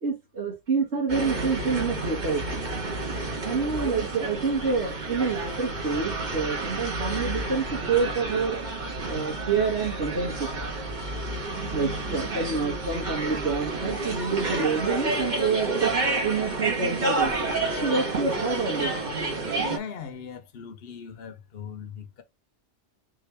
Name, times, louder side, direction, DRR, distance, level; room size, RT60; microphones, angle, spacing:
voice 1, 0.0-2.6 3.4-8.6 9.1-10.5 11.7-15.9 16.2-17.5 17.8-18.9, right 5 dB, 70° right, 1.6 m, -27 dB
sound 1, 1.1-19.8, right 2 dB, 40° right, 1.4 m, -30 dB
voice 2, 19.7-22.2, left 7 dB, 60° left, 1.0 m, -39 dB
3.8 x 3.7 x 3.2 m
omnidirectional pair, 1.2 m